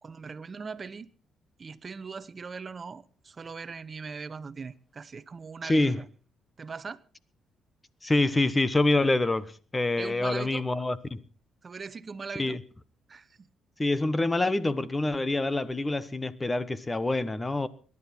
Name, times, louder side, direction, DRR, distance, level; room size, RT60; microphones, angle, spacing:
voice 1, 0.0-1.1 1.6-6.0 6.6-7.0 10.0-10.6 11.6-12.6 13.1-13.5, right 5 dB, 35° right, 0.8 m, -40 dB
voice 2, 5.6-6.0 8.0-11.2 12.4-12.6 13.8-17.7, left 2 dB, 20° left, 1.1 m, -26 dB
21.5 x 11.0 x 4.4 m
cardioid pair, 90°, 0 cm